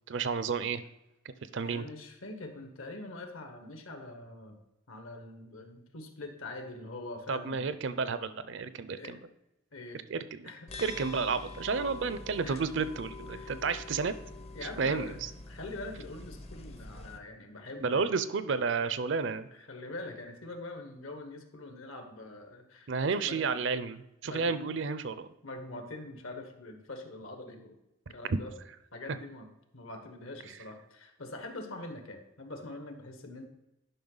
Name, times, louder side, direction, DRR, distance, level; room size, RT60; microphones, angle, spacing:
voice 1, 0.1-0.8 1.2-1.9 7.3-9.2 10.1-10.5 10.8-14.2 14.6-15.3 17.8-19.5 22.9-25.3 28.3-28.4, right 5 dB, 55° right, 13 dB, 0.5 m, -31 dB
voice 2, 1.6-4.6 4.9-7.7 8.9-9.1 9.7-10.0 10.4-11.2 12.4-12.6 13.3-13.6 14.5-15.2 15.5-18.0 19.5-23.6 24.2-24.8 25.4-27.8 28.1-28.5 28.9-29.5 29.7-33.4, left 2 dB, 70° left, 6 dB, 1.3 m, -44 dB
sound 1, 10.7-17.2, left 3 dB, 30° left, 0.5 m, -45 dB
10.5 x 5.4 x 3.9 m, 0.92 s
head